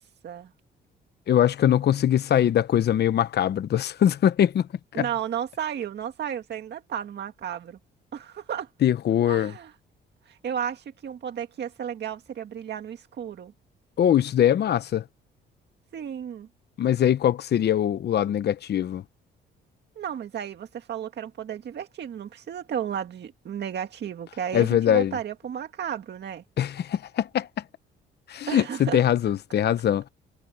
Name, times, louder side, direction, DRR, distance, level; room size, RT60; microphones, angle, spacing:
voice 1, 1.3-4.7 5.0-5.1 8.8-9.5 14.0-15.0 16.8-19.0 24.5-25.1 26.6-27.5 28.3-30.0, left 10 dB, 55° left, 0.9 m, -22 dB
voice 2, 4.9-7.8 8.1-8.7 9.3-9.7 10.3-13.5 15.9-16.5 20.0-26.4 28.5-29.0, right 9 dB, 60° right, 1.9 m, -33 dB
cardioid pair, 90°, 20 cm